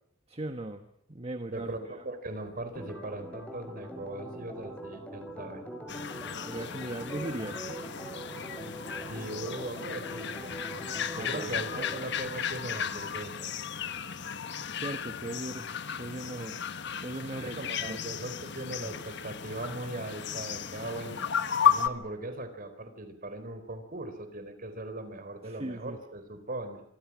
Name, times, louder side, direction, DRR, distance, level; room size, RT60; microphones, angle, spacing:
voice 1, 0.3-1.7 6.4-7.7 11.1-11.9 14.7-15.7 16.0-16.6 17.0-18.0 25.4-26.0, right 1 dB, 30° right, 7 dB, 1.3 m, -38 dB
voice 2, 1.5-5.6 9.1-10.6 11.2-13.5 17.2-21.3 21.6-26.8, right 2 dB, 45° right, 9 dB, 4.1 m, -39 dB
Organ, 2.7-12.1, right 1 dB, 5° left, 5.2 m, -43 dB
sound 1, 5.9-21.9, left 8 dB, 60° left, 1.3 m, -34 dB
26.5 x 25.0 x 6.2 m, 0.70 s
head